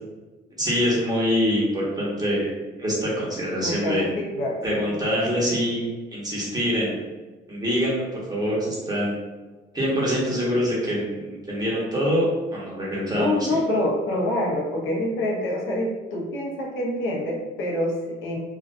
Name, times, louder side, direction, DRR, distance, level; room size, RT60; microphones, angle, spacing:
voice 1, 0.6-2.5 2.8-4.1 4.6-5.8 6.1-7.0 7.5-9.2 9.7-13.6, equal, 20° right, -5 dB, 1.0 m, -24 dB
voice 2, 3.6-4.9 13.1-18.4, left 1 dB, 80° left, -1 dB, 0.6 m, -26 dB
2.4 x 2.2 x 2.5 m, 1.2 s
cardioid pair, 90°, 20 cm